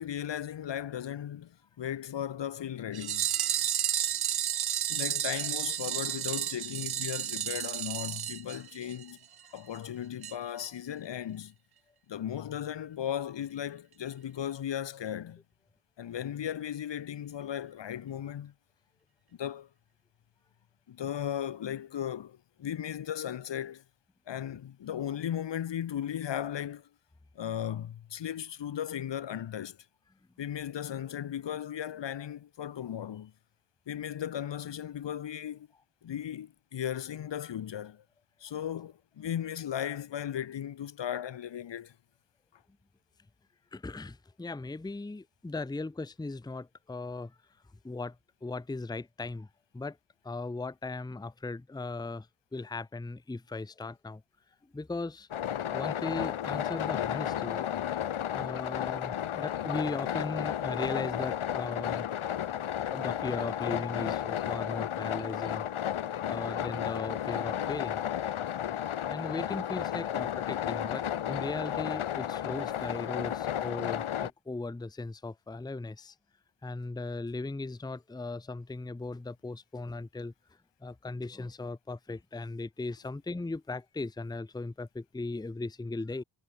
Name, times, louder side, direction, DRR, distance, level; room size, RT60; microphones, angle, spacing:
voice 1, 0.0-3.3 4.9-9.2 9.5-11.5 12.1-15.4 16.0-18.5 19.4-19.7 20.9-23.8 24.3-26.9 27.3-29.8 30.4-33.3 33.9-35.7 36.0-38.0 38.4-41.9, left 10 dB, 60° left, 1.0 m, -36 dB
sound 1, 2.9-9.1 9.4-9.5 9.7-9.8 10.2-10.3 10.6-10.7, right 11 dB, 55° right, 0.6 m, -32 dB
voice 2, 43.7-47.4 47.8-48.2 48.4-49.5 49.7-50.0 50.2-54.2 54.7-55.3 55.7-57.7 58.3-62.1 62.9-65.9 66.3-68.0 69.1-76.1 76.6-80.3 80.8-86.2, left 3 dB, 10° left, 0.7 m, -38 dB
sound 2, 55.3-74.3, left 10 dB, 85° left, 1.4 m, -33 dB
wide cardioid pair, 170°, 48 cm